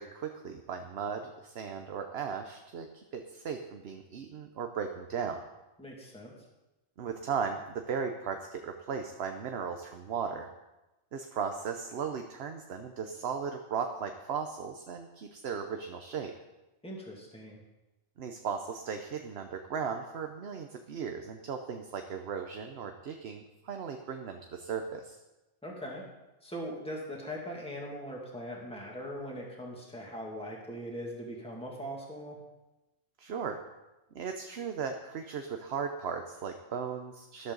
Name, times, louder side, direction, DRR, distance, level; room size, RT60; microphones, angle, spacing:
voice 1, 0.0-5.4 7.0-10.5 11.1-16.3 18.2-25.2 33.2-33.6 34.1-37.5, right 6 dB, 60° right, 5 dB, 1.0 m, -37 dB
voice 2, 5.8-6.3 16.8-17.6 25.6-26.0 26.4-32.4, equal, 5° left, -2 dB, 2.2 m, -40 dB
13.5 x 11.5 x 3.9 m, 1.0 s
omnidirectional pair, 1.3 m